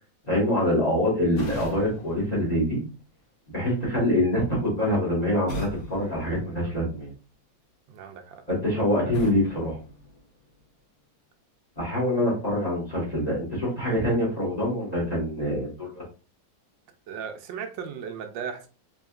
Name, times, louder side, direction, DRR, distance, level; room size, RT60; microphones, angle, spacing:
voice 1, 0.2-2.8 3.5-7.1 8.5-9.8 11.8-16.0, left 1 dB, 25° left, 1.4 m, -25 dB
sound 1, 1.3-3.3 5.5-7.2 9.1-10.7, left 1 dB, 75° left, 1.6 m, -39 dB
voice 2, 7.9-8.4 8.9-9.0 17.1-18.7, right 7 dB, 80° right, 1.3 m, -36 dB
3.7 x 3.5 x 2.3 m
omnidirectional pair, 2.0 m